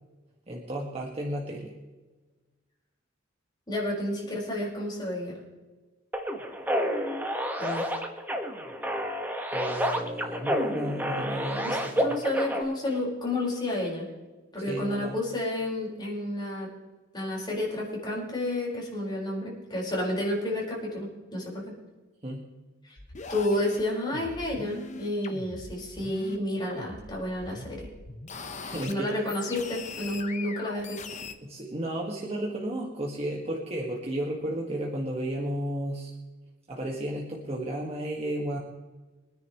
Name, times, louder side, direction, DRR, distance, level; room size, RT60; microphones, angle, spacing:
voice 1, 0.5-1.7 9.5-12.2 14.6-15.2 22.2-22.5 28.4-29.2 31.4-36.1 36.7-38.6, right 1 dB, 30° right, -2 dB, 1.8 m, -33 dB
voice 2, 3.7-5.4 7.6-7.8 11.6-14.1 14.5-16.7 17.1-21.7 23.3-27.9 28.8-31.0, left 1 dB, 25° left, -4 dB, 4.9 m, -31 dB
sound 1, 6.1-12.6, equal, 10° right, 1.5 m, -29 dB
sound 2, 23.0-26.4 26.7-28.9 29.3-31.3, left 4 dB, 40° left, 1.0 m, -41 dB
24.5 x 10.0 x 3.1 m, 1.3 s
head